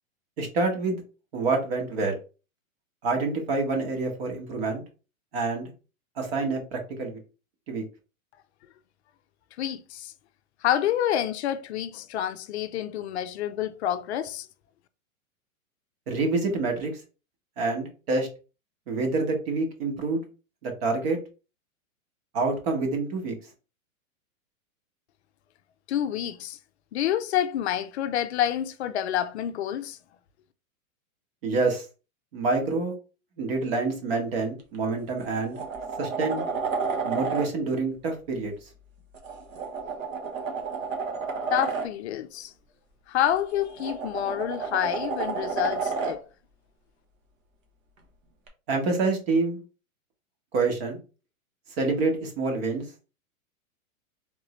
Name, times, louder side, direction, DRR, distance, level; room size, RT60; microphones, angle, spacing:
voice 1, 0.4-1.0 1.3-2.1 3.0-4.8 5.3-5.7 6.2-7.2 7.7-7.8 16.1-17.0 17.6-18.3 18.9-20.2 20.6-21.2 22.3-23.3 31.4-31.9 32.3-32.9 33.4-35.6 36.0-36.5 37.0-38.5 48.7-49.6 50.5-51.0 51.8-52.8, right 3 dB, 45° right, 1.3 m, -27 dB
voice 2, 9.6-10.1 10.6-14.5 25.9-26.6 26.9-30.0 41.5-42.5 43.1-46.2, left 11 dB, 55° left, 0.5 m, -28 dB
sound 1, 34.6-34.8 35.2-37.5 39.1-41.9 43.4-46.2 48.5-48.6, right 5 dB, 70° right, 1.2 m, -31 dB
3.6 x 2.6 x 3.1 m
hypercardioid pair, 155°, 42 cm